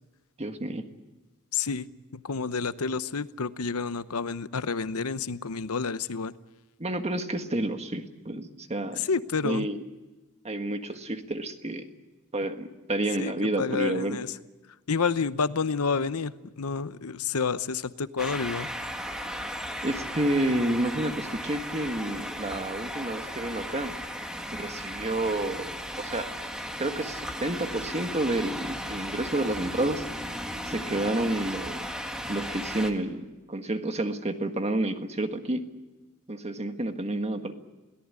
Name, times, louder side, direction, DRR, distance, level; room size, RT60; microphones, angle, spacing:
voice 1, 0.4-0.8 6.8-9.0 9.4-9.8 10.4-11.9 12.3-14.2 19.8-23.9 24.5-25.7 26.0-26.3 26.8-30.0 30.6-31.9 32.3-35.6 36.3-37.5, right 1 dB, 30° right, 7 dB, 1.6 m, -30 dB
voice 2, 1.5-6.3 9.0-9.7 13.2-14.3 14.9-18.7, left 5 dB, 80° left, 14 dB, 0.9 m, -29 dB
sound 1, 18.2-32.9, equal, 5° right, 1.9 m, -36 dB
22.0 x 18.0 x 9.7 m, 1.1 s
head